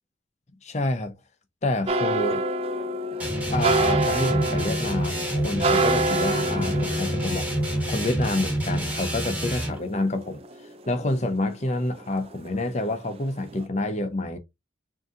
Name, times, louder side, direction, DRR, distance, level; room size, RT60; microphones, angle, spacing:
voice 1, 0.6-1.1 1.6-2.4 3.5-7.5 7.9-10.4 10.9-14.4, left 2 dB, 35° left, 0.6 m, -28 dB
sound 1, 1.9-11.1 11.5-12.5 12.8-13.2 13.5-13.6, right 2 dB, 30° right, 0.3 m, -28 dB
sound 2, 3.2-9.8, right 1 dB, 10° right, 1.2 m, -28 dB
3.9 x 2.7 x 3.5 m
head